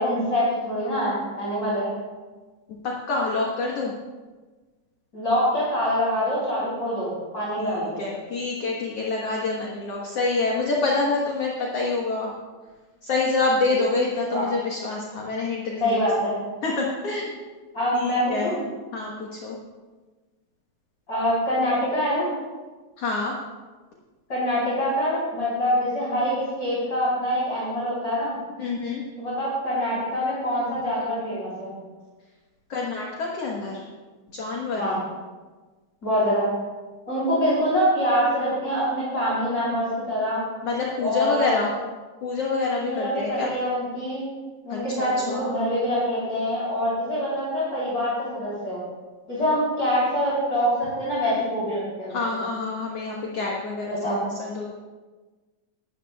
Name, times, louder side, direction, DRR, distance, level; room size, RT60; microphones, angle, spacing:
voice 1, 0.0-1.9 5.1-8.0 14.3-14.4 15.8-16.4 17.7-18.6 21.1-22.3 24.3-28.4 29.2-31.7 34.8-35.0 36.0-36.5 37.1-40.5 41.0-41.6 42.8-44.2 44.6-48.8 49.3-52.1 54.0-54.2, equal, 25° left, -8 dB, 3.9 m, -25 dB
voice 2, 2.8-3.9 7.6-12.3 13.0-16.0 16.6-17.4 17.9-18.6 18.9-19.6 23.0-23.3 28.6-29.0 32.7-33.8 34.3-34.8 40.6-41.7 42.2-43.5 44.7-45.5 52.1-54.0 54.2-54.6, left 3 dB, 55° left, -2 dB, 1.9 m, -27 dB
18.5 x 12.5 x 2.3 m, 1.3 s
omnidirectional pair, 3.9 m